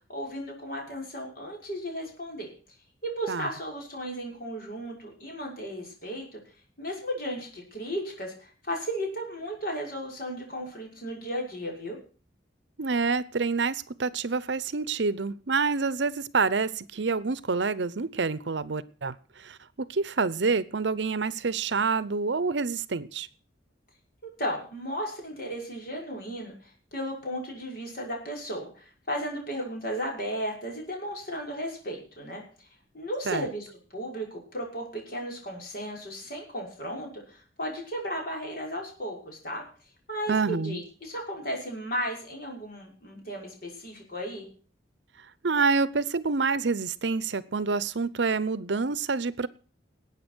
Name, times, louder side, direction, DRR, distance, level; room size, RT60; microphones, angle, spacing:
voice 1, 0.1-2.5 3.0-6.4 6.8-12.0 24.2-32.4 32.9-33.7 33.9-39.6 40.1-44.5, equal, 50° left, 0 dB, 6.0 m, -35 dB
voice 2, 12.8-19.1 19.4-19.6 19.9-23.3 33.3-33.5 40.3-40.8 45.4-49.5, right 4 dB, 70° right, 18 dB, 0.7 m, -27 dB
20.0 x 8.9 x 6.2 m, 0.39 s
head